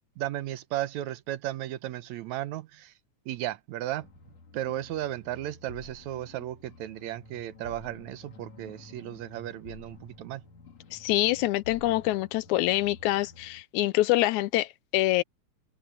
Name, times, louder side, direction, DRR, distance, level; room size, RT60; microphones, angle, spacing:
voice 1, 0.2-2.9 3.3-4.1 4.5-10.4, right 13 dB, 75° right, 2.1 m, -35 dB
sound 1, 4.0-13.6, left 3 dB, 65° left, 3.8 m, -50 dB
voice 2, 10.9-15.2, left 16 dB, 90° left, 2.1 m, -25 dB
omnidirectional pair, 3.4 m